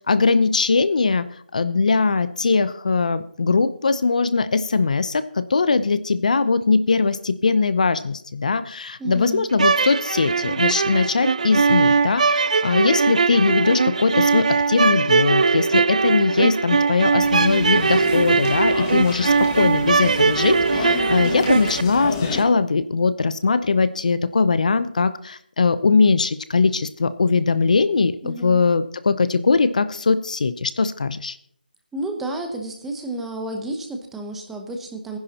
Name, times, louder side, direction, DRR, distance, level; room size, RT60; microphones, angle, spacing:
voice 1, 0.1-1.3 1.5-31.4, left 4 dB, 55° left, 14 dB, 0.7 m, -20 dB
voice 2, 9.0-9.5 28.2-28.6 31.9-35.2, right 2 dB, 5° right, 3 dB, 0.8 m, -31 dB
sound 1, 9.5-21.8, right 4 dB, 50° right, 0.5 m, -20 dB
sound 2, 17.2-22.4, left 3 dB, 20° left, 1.7 m, -31 dB
18.0 x 10.5 x 2.9 m, 0.63 s
figure-of-eight pair, 165°, 5 cm